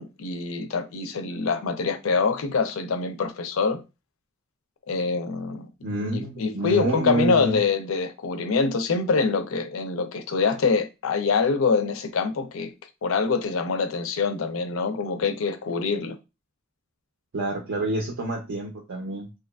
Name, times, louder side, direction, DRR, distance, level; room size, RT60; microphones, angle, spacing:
voice 1, 0.0-3.8 4.9-5.7 6.1-12.7 13.0-16.2, left 4 dB, 70° left, 0.4 m, -25 dB
voice 2, 5.8-7.6 17.3-19.3, right 2 dB, 60° right, 0.5 m, -28 dB
2.8 x 2.4 x 2.2 m
head